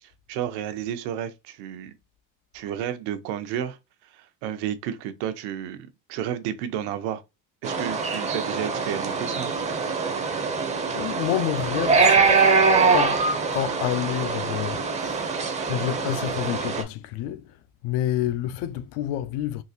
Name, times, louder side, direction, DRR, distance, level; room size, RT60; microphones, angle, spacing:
voice 1, 0.0-1.9 2.5-3.8 4.1-7.2 7.6-9.5, right 10 dB, 85° right, 0.7 m, -32 dB
sound 1, 7.6-16.8, right 4 dB, 20° right, 0.4 m, -23 dB
voice 2, 11.0-12.5 12.9-13.2 13.5-15.3 15.6-17.4 17.8-19.6, left 12 dB, 85° left, 0.5 m, -28 dB
3.8 x 2.4 x 2.6 m
cardioid pair, 150°, 39 cm